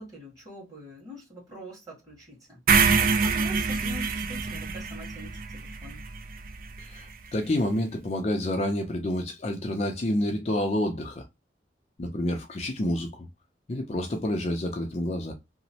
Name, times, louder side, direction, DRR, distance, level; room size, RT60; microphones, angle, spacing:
voice 1, 0.0-6.0, equal, 20° right, 1.6 m, -45 dB
sound 1, 2.7-6.8, right 5 dB, 50° right, 0.3 m, -25 dB
voice 2, 6.8-11.2 12.0-13.3 13.7-15.3, left 1 dB, 35° left, 0.4 m, -28 dB
2.9 x 2.0 x 2.7 m
head